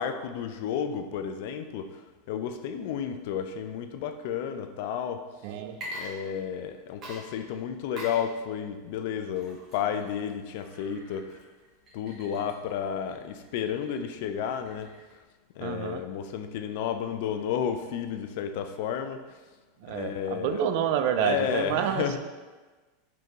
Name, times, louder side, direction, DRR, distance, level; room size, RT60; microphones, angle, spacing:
voice 1, 0.0-5.2 5.9-11.4 11.9-14.9 15.6-19.4 19.9-20.6 21.2-22.2, left 8 dB, 65° left, 8 dB, 0.3 m, -32 dB
voice 2, 5.4-5.8 15.6-16.0 19.8-22.2, right 8 dB, 60° right, 8 dB, 0.3 m, -28 dB
Water / Liquid, 5.7-6.7 7.0-15.2, equal, 30° right, 1.0 m, -45 dB
4.3 x 2.6 x 3.0 m, 1.3 s
supercardioid pair, 135°, 0 cm